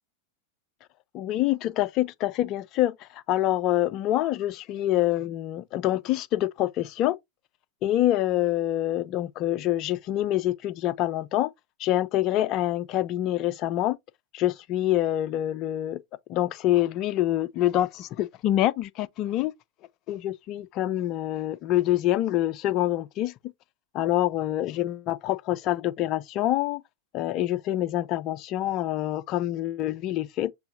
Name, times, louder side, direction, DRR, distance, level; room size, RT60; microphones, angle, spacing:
voice 1, 1.1-7.2 7.8-11.5 11.8-14.0 14.3-16.0 16.3-19.5 20.1-23.3 23.9-26.8 27.1-30.5, left 14 dB, 40° left, 0.3 m, -26 dB
6.8 x 2.7 x 2.5 m
figure-of-eight pair, 90°, 0 cm